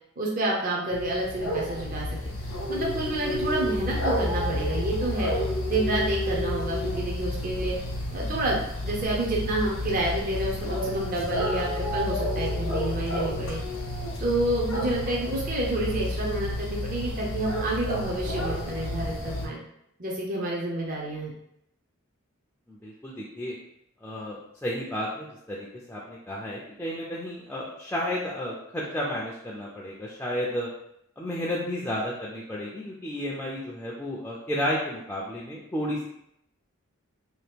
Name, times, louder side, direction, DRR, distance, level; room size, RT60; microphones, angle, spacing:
voice 1, 0.2-2.1 2.7-5.3 5.7-7.8 8.1-13.6 14.2-19.6 20.0-21.3, right 1 dB, 40° right, -3 dB, 0.6 m, -29 dB
sound 1, 0.9-19.5, left 1 dB, 70° left, 0.6 m, -30 dB
voice 2, 22.7-23.5 24.0-30.7 31.2-36.1, equal, 10° left, -5 dB, 0.3 m, -32 dB
2.8 x 2.3 x 3.4 m, 0.77 s
head